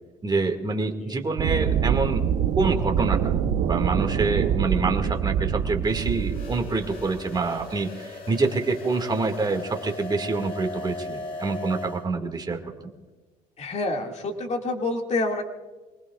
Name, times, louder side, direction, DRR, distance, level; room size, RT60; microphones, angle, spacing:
voice 1, 0.2-2.2 2.6-3.3 3.6-12.9, right 3 dB, 25° right, 4 dB, 2.0 m, -26 dB
sound 1, 1.4-7.7, right 8 dB, 70° right, 1.0 m, -25 dB
sound 2, 5.8-12.0, left 2 dB, 60° left, 2.2 m, -38 dB
voice 2, 13.6-15.4, left 2 dB, 40° left, 2 dB, 2.2 m, -27 dB
26.5 x 19.5 x 2.4 m, 1.3 s
cardioid pair, 110°, 17 cm